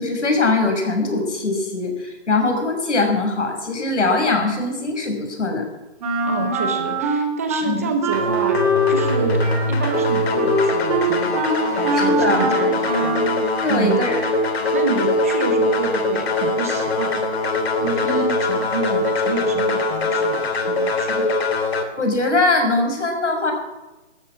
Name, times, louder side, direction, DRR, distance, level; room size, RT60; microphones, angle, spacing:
voice 1, 0.0-5.6 7.7-7.9 12.0-12.4 13.6-14.2 18.0-18.2 22.0-23.5, left 3 dB, 85° left, 4 dB, 5.6 m, -21 dB
Wind instrument woodwind instrument, 6.0-7.7 8.0-13.3, right 1 dB, 30° right, 3.0 m, -23 dB
voice 2, 6.3-8.6 8.9-13.2 13.7-14.0 14.7-17.2 17.8-21.3, right 5 dB, 15° right, 6 dB, 0.6 m, -28 dB
sound 1, 8.1-21.8, left 2 dB, 60° left, 2.7 m, -22 dB
16.5 x 12.5 x 6.1 m, 1.1 s
hypercardioid pair, 165°, 35 cm